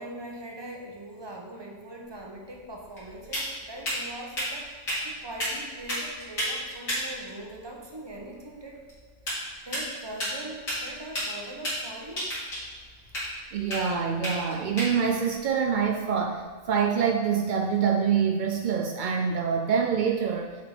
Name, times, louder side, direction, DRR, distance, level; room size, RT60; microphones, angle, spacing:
voice 1, 0.0-8.8 9.3-12.2, right 1 dB, 20° right, -1 dB, 0.9 m, -41 dB
sound 1, 2.1-16.8, equal, 85° left, 2.9 m, -35 dB
voice 2, 13.5-16.4 16.7-20.5, right 6 dB, 75° right, 2 dB, 0.4 m, -25 dB
7.2 x 4.3 x 4.3 m, 1.4 s
omnidirectional pair, 1.4 m